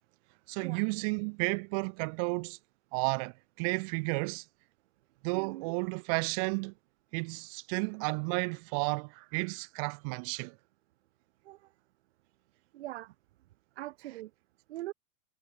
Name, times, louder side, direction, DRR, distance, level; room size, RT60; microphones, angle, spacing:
voice 1, 0.5-2.6 2.9-4.4 5.2-6.7 7.1-10.6, right 37 dB, 30° right, 0.5 m, -32 dB
voice 2, 5.3-5.7 11.4-11.7 12.7-13.1 13.8-14.3 14.7-14.9, right 16 dB, 55° right, 2.3 m, -42 dB
figure-of-eight pair, 110°, 38 cm